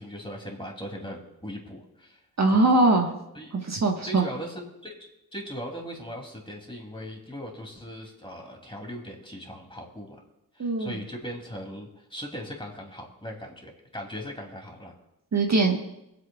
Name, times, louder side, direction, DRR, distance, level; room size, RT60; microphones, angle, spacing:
voice 1, 0.0-2.2 2.5-2.6 3.3-3.6 4.1-5.0 5.3-10.2 10.5-14.9, equal, 15° left, 1 dB, 2.8 m, -39 dB
voice 2, 2.4-3.1 3.5-4.2 10.6-11.0 15.3-15.8, right 2 dB, 45° right, 1 dB, 1.4 m, -21 dB
23.5 x 8.1 x 2.4 m, 0.87 s
cardioid pair, 50°, 38 cm